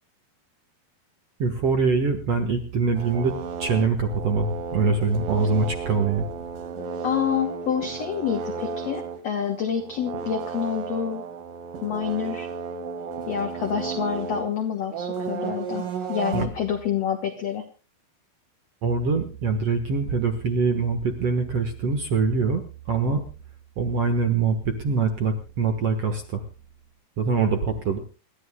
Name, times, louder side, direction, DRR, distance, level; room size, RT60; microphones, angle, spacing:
voice 1, 1.4-6.3 16.3-16.5 18.8-22.6 22.9-23.2 23.8-26.4 27.2-28.0, right 4 dB, 75° right, 7 dB, 1.4 m, -24 dB
sound 1, 3.0-14.5 14.9-16.5, right 5 dB, 60° right, 3.0 m, -33 dB
voice 2, 7.0-11.2 11.8-12.5 13.3-17.6, left 8 dB, 75° left, 5 dB, 1.5 m, -28 dB
27.5 x 13.5 x 2.3 m, 0.33 s
omnidirectional pair, 5.0 m